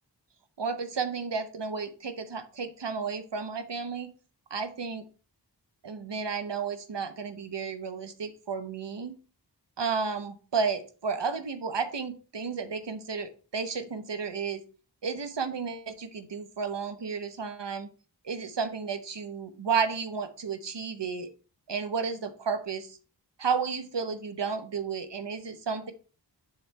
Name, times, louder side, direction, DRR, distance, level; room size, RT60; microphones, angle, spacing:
voice 1, 0.6-4.1 4.5-5.0 5.8-9.1 9.8-14.6 15.0-17.9 18.2-21.3 21.7-23.0 23.4-25.9, right 5 dB, 75° right, 9 dB, 1.0 m, -32 dB
7.0 x 3.4 x 5.7 m, 0.37 s
wide cardioid pair, 55°, 43 cm